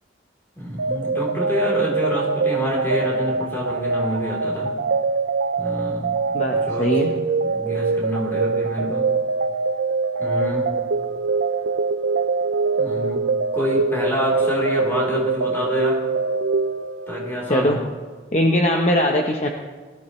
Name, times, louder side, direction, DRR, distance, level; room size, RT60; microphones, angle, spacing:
voice 1, 0.6-4.7 5.6-6.2 6.5-7.0 7.4-9.0 10.2-10.7 12.8-13.2 13.5-16.0 17.1-17.8, equal, 15° left, -4 dB, 3.5 m, -27 dB
sound 1, 0.8-17.4, right 4 dB, 90° right, 0.5 m, -23 dB
voice 2, 6.8-7.1 17.5-17.8 18.3-19.5, left 1 dB, 35° left, 2 dB, 0.9 m, -20 dB
20.5 x 14.0 x 3.2 m, 1.5 s
head